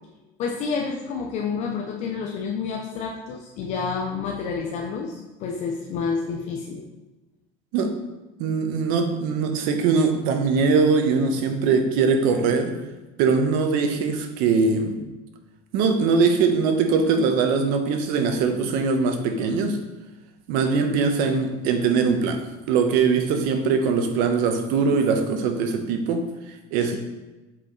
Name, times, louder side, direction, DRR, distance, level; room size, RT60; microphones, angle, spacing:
voice 1, 0.4-6.9 26.8-27.0, left 5 dB, 45° left, 1 dB, 0.6 m, -29 dB
voice 2, 8.4-12.7 13.2-15.0 15.7-19.8 20.5-22.4 22.7-26.3 26.7-27.0, right 5 dB, 65° right, 6 dB, 1.0 m, -21 dB
7.5 x 4.8 x 4.0 m, 1.1 s
cardioid pair, 150°, 16 cm